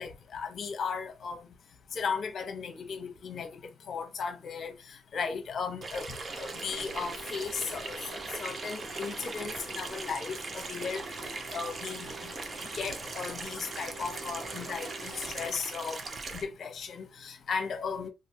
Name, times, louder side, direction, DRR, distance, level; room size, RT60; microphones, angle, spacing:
voice 1, 0.0-1.5 1.9-3.5 3.9-6.1 6.4-8.0 8.4-11.0 11.5-12.3 12.7-16.0 16.3-18.1, left 5 dB, 55° left, 0.9 m, -36 dB
Water tap faucet / Sink (filling or washing), 5.8-16.4, right 3 dB, 40° right, 0.6 m, -40 dB
sound 1, 6.3-15.5, right 1 dB, 15° right, 1.1 m, -47 dB
3.1 x 2.6 x 2.8 m
cardioid pair, 90°, 0 cm